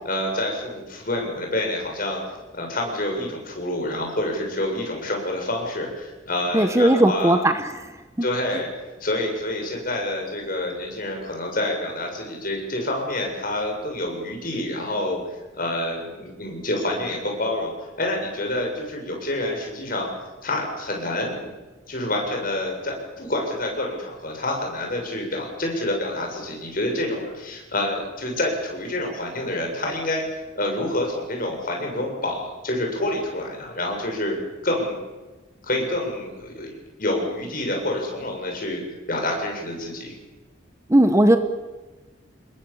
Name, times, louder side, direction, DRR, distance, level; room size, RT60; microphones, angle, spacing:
voice 1, 0.0-2.2 2.5-7.4 8.2-8.7 9.0-15.2 15.5-17.7 18.0-20.1 20.4-21.5 21.9-30.2 30.6-34.4 34.6-35.0 35.6-36.7 37.0-38.8 39.1-40.1, left 1 dB, 50° left, 1 dB, 7.3 m, -27 dB
voice 2, 6.5-7.7 40.9-41.4, right 1 dB, 15° right, 8 dB, 1.2 m, -17 dB
29.0 x 21.5 x 7.4 m, 1.2 s
head